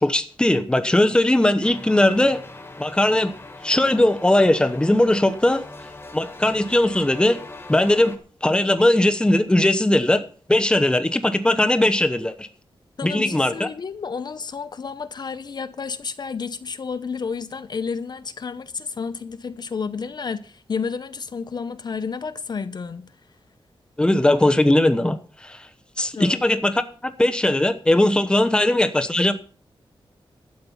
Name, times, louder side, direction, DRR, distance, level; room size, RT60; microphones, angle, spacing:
voice 1, 0.0-2.4 2.8-3.3 3.6-5.6 6.1-7.4 7.7-8.1 8.4-10.2 10.5-12.5 13.0-13.7 24.0-25.7 26.0-26.7 27.0-29.3, left 1 dB, 10° left, 1.0 m, -19 dB
sound 1, 1.6-8.2, left 2 dB, 25° left, 1.8 m, -41 dB
voice 2, 13.0-23.1 26.1-26.4, left 5 dB, 50° left, 0.7 m, -31 dB
12.5 x 8.8 x 5.6 m
wide cardioid pair, 140°, 9 cm